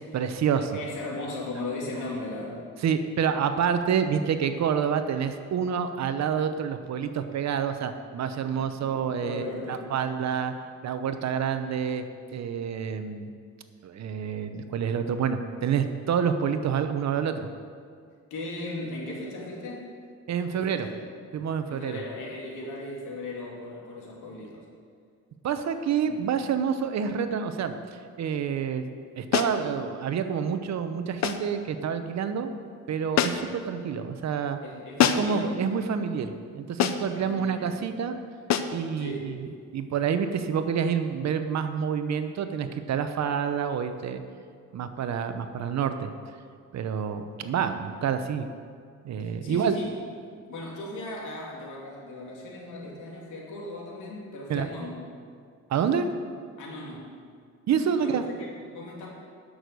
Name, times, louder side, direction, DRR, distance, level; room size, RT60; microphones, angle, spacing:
voice 1, 0.1-0.8 2.8-10.5 10.8-12.0 12.3-13.3 13.8-17.5 20.3-20.9 21.3-22.0 25.4-27.7 28.2-32.5 32.9-34.6 35.1-38.2 38.7-39.3 39.7-44.2 44.7-46.1 46.7-48.5 49.0-49.7 54.5-54.7 55.7-56.1 57.7-58.2, right 7 dB, 60° right, 9 dB, 0.9 m, -28 dB
voice 2, 0.7-2.7 8.5-9.9 18.3-19.9 20.5-21.0 21.7-24.6 26.1-26.2 34.6-35.6 37.2-37.7 39.0-39.4 49.2-50.0 50.3-55.0 56.6-57.1 58.0-59.1, left 2 dB, 80° left, -2 dB, 2.8 m, -37 dB
sound 1, 29.3-29.6 31.2-31.5 33.2-33.6 35.0-35.4 36.8-37.2 38.5-38.8, left 9 dB, 65° left, 0.7 m, -25 dB
11.0 x 6.5 x 6.8 m, 2.1 s
cardioid pair, 90°, 30 cm